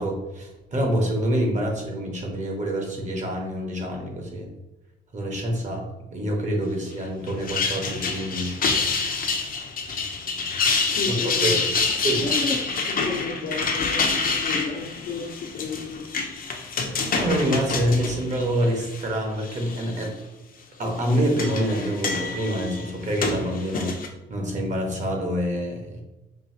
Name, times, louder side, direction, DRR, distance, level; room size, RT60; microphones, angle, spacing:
voice 1, 0.0-4.5 5.1-9.0 11.2-11.6 12.0-12.3 17.1-20.2 20.8-23.9 24.3-26.0, equal, 35° right, 1 dB, 1.2 m, -26 dB
sound 1, 7.3-19.0 19.5-20.0 20.9-24.1, left 4 dB, 45° left, 0.7 m, -27 dB
voice 2, 10.8-11.6 12.2-12.6 12.9-16.1, left 4 dB, 75° left, 1 dB, 0.9 m, -32 dB
5.4 x 2.4 x 2.8 m, 1.0 s
cardioid pair, 90°, 20 cm